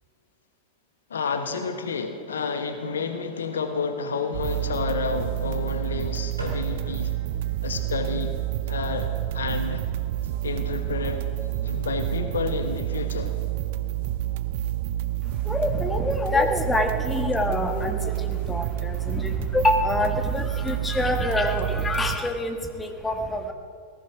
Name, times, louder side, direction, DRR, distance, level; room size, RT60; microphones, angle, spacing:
voice 1, 1.1-7.1 7.6-8.4 8.7-9.9 10.4-11.2 11.6-13.4, left 5 dB, 65° left, 8 dB, 1.3 m, -30 dB
sound 1, 4.3-22.2, right 14 dB, 50° right, 0.6 m, -29 dB
sound 2, 6.4-12.6, right 1 dB, 80° right, 3.3 m, -44 dB
voice 2, 15.5-23.5, left 2 dB, 10° left, 5 dB, 1.6 m, -26 dB
18.5 x 15.0 x 5.1 m, 2.4 s
figure-of-eight pair, 90°, 0 cm